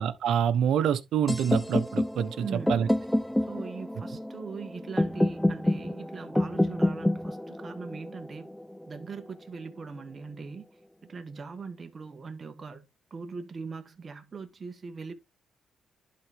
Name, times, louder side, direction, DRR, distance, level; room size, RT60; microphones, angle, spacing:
voice 1, 0.0-2.9, right 8 dB, 75° right, 1.0 m, -26 dB
sound 1, 1.3-9.2, left 1 dB, 5° left, 0.4 m, -28 dB
voice 2, 2.4-2.8 3.4-8.5 8.9-10.7 11.1-15.1, right 5 dB, 35° right, 1.6 m, -41 dB
11.0 x 4.2 x 3.6 m
cardioid pair, 90°, 0 cm